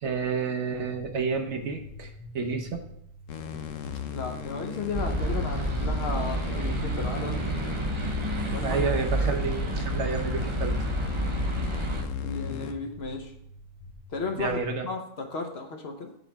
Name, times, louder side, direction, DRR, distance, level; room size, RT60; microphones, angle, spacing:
voice 1, 0.0-2.1 2.3-2.8 8.6-10.8 14.4-14.9, right 5 dB, 60° right, 5 dB, 1.2 m, -30 dB
sound 1, 0.9-14.6, left 1 dB, 15° left, 0.5 m, -47 dB
sound 2, 3.3-12.7, left 8 dB, 75° left, 1.0 m, -35 dB
voice 2, 4.1-7.4 8.5-8.9 12.2-13.3 14.1-16.1, left 4 dB, 55° left, 4 dB, 1.1 m, -34 dB
sound 3, 4.9-12.0, right 2 dB, 30° right, 0.6 m, -30 dB
7.9 x 3.3 x 6.0 m, 0.71 s
omnidirectional pair, 1.4 m